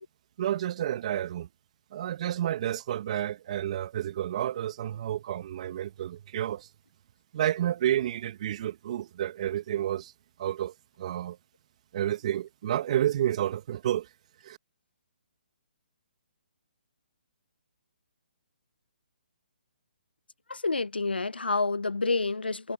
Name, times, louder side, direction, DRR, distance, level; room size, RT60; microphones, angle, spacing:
voice 1, 0.4-1.5 1.9-6.7 7.3-10.1 10.4-11.4 11.9-14.1 14.4-14.6, right 11 dB, 40° right, 1.7 m, -30 dB
voice 2, 20.5-22.7, left 3 dB, 85° left, 0.9 m, -28 dB
figure-of-eight pair, 145°, 5 cm